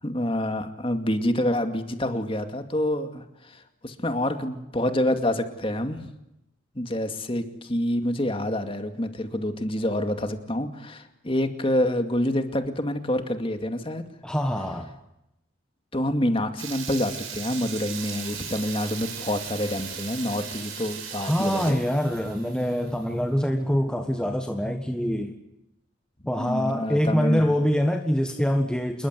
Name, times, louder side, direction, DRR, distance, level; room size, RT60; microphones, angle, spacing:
voice 1, 0.0-6.1 6.7-14.0 15.9-21.8 26.4-27.5, left 1 dB, 25° left, 7 dB, 2.4 m, -27 dB
voice 2, 14.2-14.9 21.2-25.3 26.3-29.1, equal, 5° left, 4 dB, 1.4 m, -25 dB
Water tap faucet / Liquid, 16.6-21.7, right 8 dB, 85° right, 5.9 m, -37 dB
sound 1, 17.9-23.3, right 6 dB, 50° right, 6.1 m, -45 dB
27.5 x 21.5 x 8.3 m, 0.87 s
head